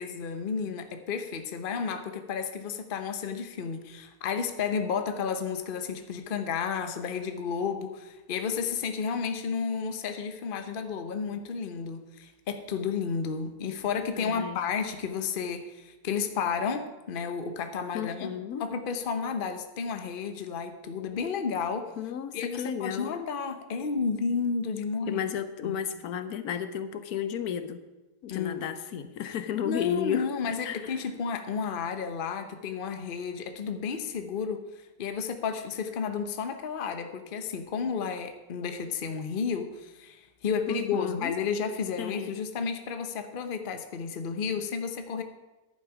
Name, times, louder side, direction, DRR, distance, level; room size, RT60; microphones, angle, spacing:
voice 1, 0.0-18.3 18.6-21.9 22.3-25.2 25.6-25.8 28.3-28.7 28.9-29.1 29.6-34.6 35.0-45.2, left 6 dB, 45° left, 8 dB, 0.9 m, -32 dB
voice 2, 14.1-14.6 17.9-18.7 22.0-23.1 25.1-27.8 28.2-31.0 40.7-41.4 42.0-42.4, left 8 dB, 80° left, 11 dB, 1.2 m, -33 dB
11.0 x 8.9 x 4.9 m, 1.1 s
omnidirectional pair, 1.6 m